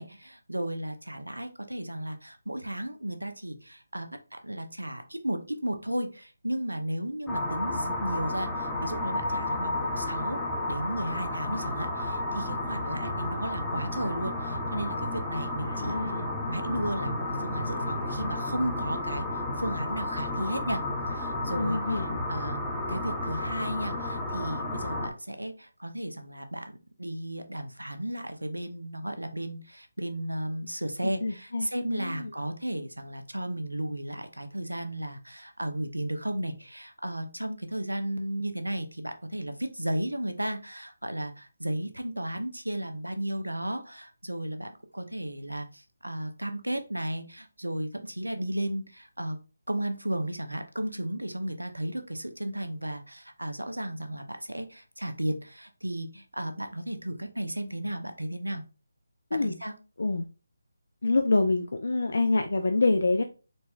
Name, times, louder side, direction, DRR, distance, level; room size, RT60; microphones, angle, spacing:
voice 1, 0.0-10.4 10.7-16.0 16.5-19.3 19.6-20.8 21.1-49.4 49.7-58.6 59.3-59.7, right 1 dB, 90° right, 7 dB, 0.5 m, -34 dB
sound 1, 7.3-25.1, left 2 dB, 5° left, 0.5 m, -32 dB
voice 2, 15.7-16.3 21.6-22.2 31.2-32.3 59.3-59.5 60.0-60.2 61.0-63.2, left 3 dB, 65° left, 5 dB, 0.3 m, -26 dB
4.0 x 2.1 x 2.2 m, 0.34 s
figure-of-eight pair, 150°, 0 cm